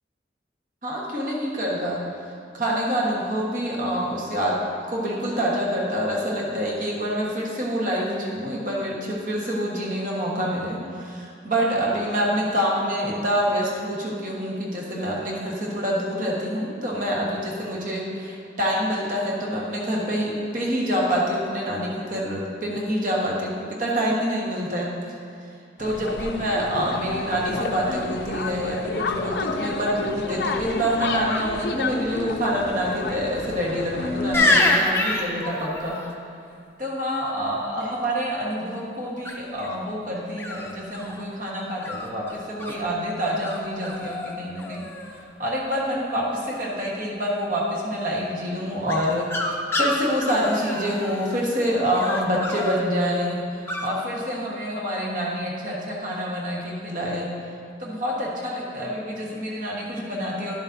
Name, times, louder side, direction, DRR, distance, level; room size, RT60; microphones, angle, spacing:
voice 1, 0.8-4.5 4.9-25.1 25.8-36.2 36.8-44.8 45.4-57.3 57.8-60.6, equal, 45° right, -3 dB, 1.4 m, -27 dB
sound 1, 25.8-34.7, left 3 dB, 60° left, 0.5 m, -30 dB
sound 2, 34.3-36.1 39.2-39.7 40.4-41.2 41.8-42.8 43.4-43.6 43.8-44.3 44.6-45.2 48.9-51.4 51.9-52.8 53.7-53.9, left 2 dB, 15° left, 0.6 m, -26 dB
12.0 x 7.1 x 2.7 m, 2.4 s
head